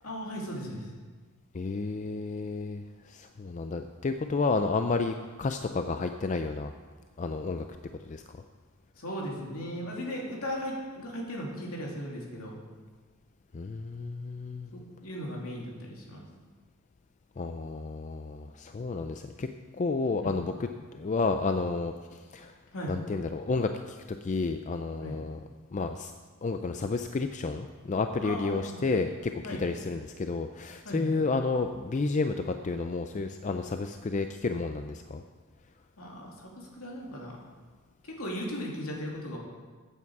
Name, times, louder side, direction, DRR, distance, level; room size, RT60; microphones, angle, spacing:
voice 1, 0.0-0.9 9.0-12.6 14.7-16.2 20.2-20.3 22.7-22.9 25.0-25.2 28.2-28.8 29.4-29.6 30.8-31.2 36.0-37.4 38.0-39.4, equal, 75° left, -2 dB, 2.7 m, -37 dB
voice 2, 1.5-6.7 7.2-7.7 8.0-8.4 13.5-14.7 17.4-19.5 19.7-22.5 22.9-25.4 25.7-26.1 26.4-35.2, left 3 dB, 35° left, 7 dB, 0.4 m, -31 dB
14.5 x 8.5 x 4.7 m, 1.5 s
head